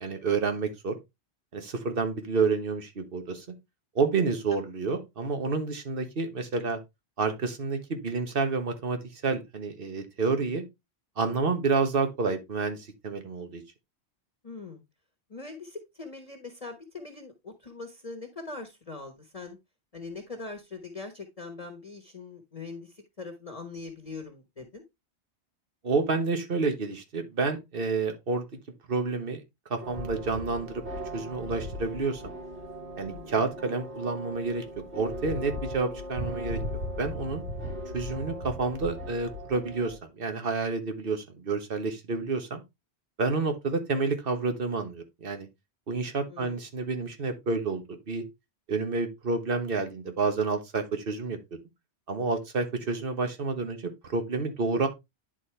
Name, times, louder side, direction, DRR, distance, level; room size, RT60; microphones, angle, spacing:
voice 1, 0.0-0.9 1.5-3.4 3.9-6.8 7.2-10.6 11.2-13.6 25.8-28.4 28.9-29.4 29.7-30.8 31.1-32.3 33.0-34.6 34.9-36.6 37.0-37.4 37.9-42.6 43.2-45.5 45.9-48.2 48.7-51.4 52.1-54.9, right 4 dB, 55° right, 1.4 m, -29 dB
voice 2, 14.4-14.8 15.3-19.6 19.9-24.8 33.1-33.3 46.3-46.6, left 3 dB, 35° left, 1.2 m, -42 dB
sound 1, 29.8-40.0, equal, 80° right, 4.6 m, -38 dB
10.0 x 4.3 x 3.3 m
omnidirectional pair, 1.1 m